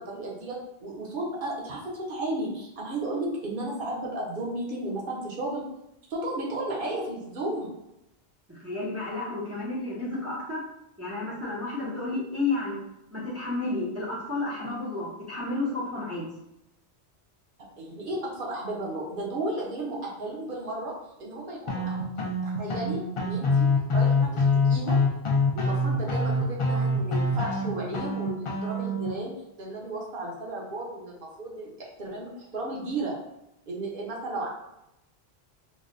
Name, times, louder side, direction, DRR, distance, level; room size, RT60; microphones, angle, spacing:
voice 1, 0.0-5.6 6.1-7.7 17.8-20.9 21.2-22.1 22.4-24.9 25.5-29.3 29.6-33.2 33.7-34.5, right 1 dB, 55° right, -4 dB, 0.9 m, -34 dB
voice 2, 8.5-10.6 11.0-12.8 13.1-16.3 27.8-27.9, left 2 dB, 20° right, -6 dB, 0.5 m, -31 dB
sound 1, 21.7-29.1, left 2 dB, 45° left, 0.4 m, -25 dB
3.9 x 2.1 x 2.5 m, 0.87 s
omnidirectional pair, 1.1 m